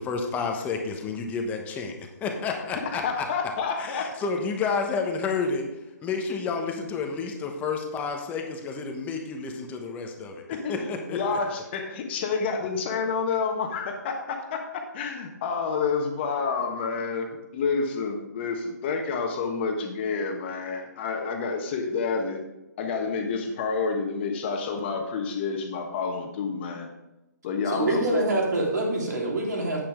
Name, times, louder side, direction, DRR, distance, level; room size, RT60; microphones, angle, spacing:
voice 1, 0.0-3.3 3.8-5.6 6.0-10.4 10.7-11.4, left 4 dB, 15° left, 3 dB, 1.1 m, -30 dB
voice 2, 2.9-4.1 10.5-22.4 22.8-26.9 27.4-28.2, left 5 dB, 35° left, 3 dB, 1.4 m, -29 dB
voice 3, 27.7-29.8, right 2 dB, 70° right, -2 dB, 3.4 m, -25 dB
8.7 x 8.6 x 3.7 m, 0.98 s
hypercardioid pair, 145°, 10 cm